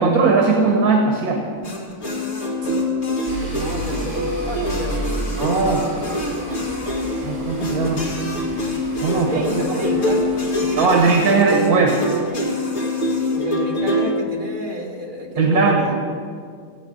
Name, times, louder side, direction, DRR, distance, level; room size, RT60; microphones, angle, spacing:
voice 1, 0.0-1.5 5.4-5.9 7.2-8.1 9.0-9.3 9.7-9.8 10.8-12.0 15.4-15.9, right 4 dB, 90° right, 1 dB, 1.7 m, -18 dB
sound 1, 1.6-14.1, left 1 dB, 50° left, 2.3 m, -24 dB
sound 2, 3.3-11.2, equal, 35° right, 3.2 m, -32 dB
voice 2, 3.5-5.1 9.2-10.3 10.5-11.3 13.3-15.9, equal, 65° right, 0 dB, 2.3 m, -30 dB
15.5 x 8.5 x 5.3 m, 2.1 s
omnidirectional pair, 1.5 m